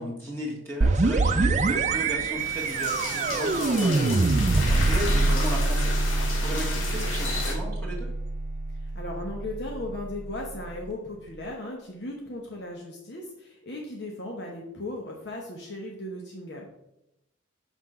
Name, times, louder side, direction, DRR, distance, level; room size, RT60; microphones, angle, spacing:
voice 1, 0.0-8.1, equal, 10° left, -4 dB, 1.5 m, -36 dB
sound 1, 0.8-10.4, right 3 dB, 35° right, 0.4 m, -25 dB
sound 2, 2.4-7.5, left 3 dB, 85° left, 1.7 m, -33 dB
voice 2, 8.7-16.7, left 1 dB, 55° left, 0 dB, 1.0 m, -37 dB
5.7 x 4.6 x 5.5 m, 0.84 s
head